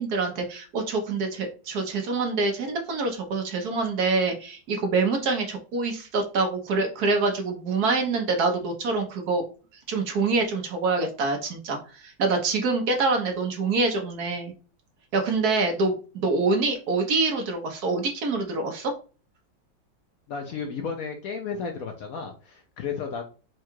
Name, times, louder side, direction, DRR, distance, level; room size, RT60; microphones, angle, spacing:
voice 1, 0.0-9.4 9.9-14.5 15.1-18.9, right 3 dB, 60° right, 3 dB, 1.3 m, -25 dB
voice 2, 20.3-23.2, left 5 dB, 65° left, 4 dB, 0.9 m, -33 dB
4.7 x 2.4 x 4.4 m, 0.36 s
omnidirectional pair, 2.0 m